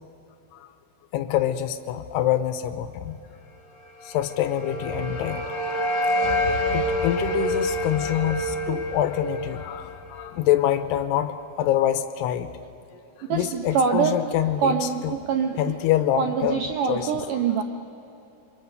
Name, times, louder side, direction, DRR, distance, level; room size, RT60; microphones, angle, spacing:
voice 1, 1.1-3.2 4.0-5.5 6.7-12.5 13.3-15.2 15.6-16.6 16.9-17.1, left 12 dB, 80° left, 10 dB, 2.8 m, -25 dB
sound 1, 4.0-11.0, equal, 40° left, 1.3 m, -27 dB
voice 2, 13.3-15.7 16.2-17.6, right 6 dB, 80° right, 5 dB, 1.9 m, -25 dB
27.5 x 23.5 x 6.8 m, 2.9 s
omnidirectional pair, 5.0 m